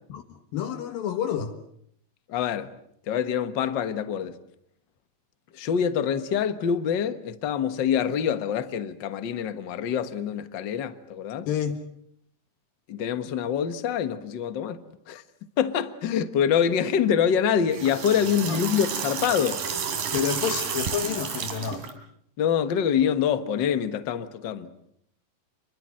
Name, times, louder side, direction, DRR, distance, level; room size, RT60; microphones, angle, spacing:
voice 1, 0.1-1.6 11.5-11.8 18.5-18.6 20.1-21.9, left 8 dB, 80° left, 3.1 m, -29 dB
voice 2, 2.3-2.7 3.1-4.4 5.5-11.5 12.9-14.8 15.1-15.2 15.6-19.6 22.4-24.7, left 8 dB, 60° left, 1.2 m, -25 dB
sound 1, 17.6-21.9, right 6 dB, 75° right, 4.5 m, -31 dB
29.0 x 23.0 x 7.6 m
omnidirectional pair, 4.1 m